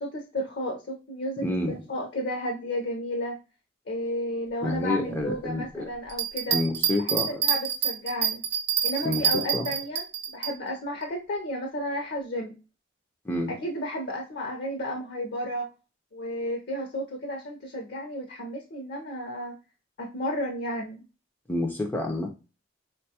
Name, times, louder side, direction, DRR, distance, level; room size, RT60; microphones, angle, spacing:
voice 1, 0.0-3.4 3.9-6.6 7.0-8.4 8.8-12.5 13.5-15.7 16.1-19.5 20.0-21.0, equal, 60° left, 1 dB, 0.6 m, -32 dB
voice 2, 1.4-1.8 4.6-5.9 6.5-7.4 9.0-9.7 13.2-13.6 21.5-22.3, left 1 dB, 10° left, 1 dB, 0.3 m, -29 dB
Bell, 6.1-10.5 11.0-11.1, right 9 dB, 60° right, 0.6 m, -26 dB
3.8 x 2.2 x 2.7 m, 0.33 s
head